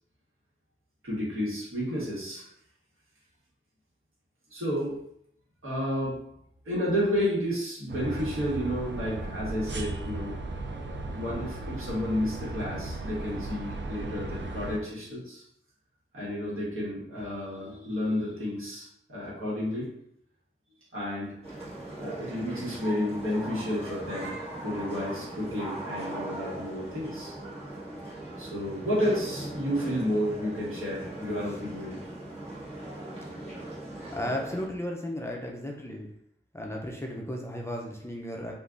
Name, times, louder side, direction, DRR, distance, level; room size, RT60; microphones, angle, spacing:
voice 1, 1.0-2.4 4.5-5.0 5.6-6.2 6.6-10.4 11.1-15.4 16.1-19.9 20.9-21.4 22.0-27.3 28.4-32.0, equal, 90° right, -7 dB, 1.4 m, -31 dB
sound 1, 7.9-14.8, right 2 dB, 60° right, 0.4 m, -36 dB
sound 2, 21.4-34.7, right 1 dB, 30° right, 1.4 m, -39 dB
voice 2, 34.1-36.1 36.5-38.5, left 1 dB, 15° left, -1 dB, 0.5 m, -34 dB
3.5 x 2.5 x 2.5 m, 0.71 s
wide cardioid pair, 85°, 21 cm